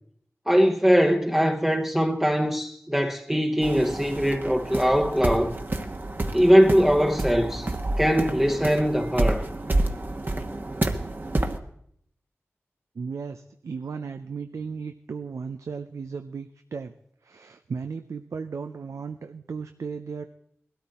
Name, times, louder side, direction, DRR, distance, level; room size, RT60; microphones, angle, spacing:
voice 1, 0.5-5.6 6.3-7.7 8.0-9.5, equal, 5° right, 0.9 m, -21 dB
sound 1, 3.6-11.6, right 2 dB, 40° right, 1.2 m, -29 dB
voice 2, 12.9-16.9 17.2-20.3, right 5 dB, 90° right, 0.5 m, -35 dB
19.5 x 13.0 x 4.2 m
wide cardioid pair, 70°, 5 cm